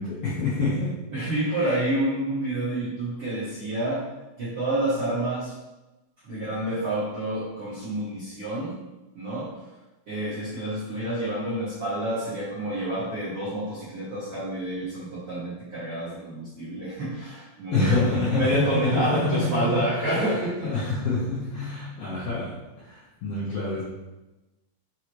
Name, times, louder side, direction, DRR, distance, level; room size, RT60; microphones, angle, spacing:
voice 1, 0.0-1.0 1.5-1.7 17.7-23.8, left 3 dB, 75° left, -7 dB, 2.2 m, -27 dB
voice 2, 1.1-4.0 4.4-5.5 6.2-8.7 9.1-9.5 10.1-20.6, right 1 dB, 65° right, -11 dB, 1.4 m, -28 dB
7.1 x 4.8 x 3.0 m, 1.0 s
omnidirectional pair, 6.0 m